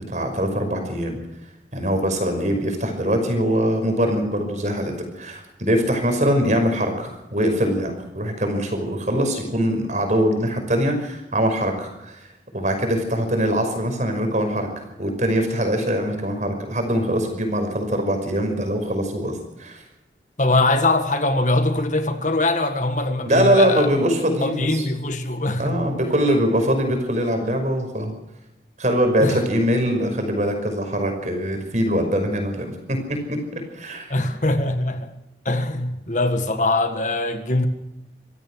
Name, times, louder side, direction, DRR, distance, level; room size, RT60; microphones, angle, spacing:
voice 1, 0.1-1.2 1.7-12.3 12.5-19.8 23.3-24.9 25.6-28.1 28.8-34.2, equal, 40° right, 5.8 m, -22 dB
voice 2, 20.4-23.9 24.4-25.9 29.2-29.4 34.1-35.2 35.4-37.7, left 2 dB, 45° left, 1.7 m, -22 dB
25.5 x 16.5 x 6.4 m
head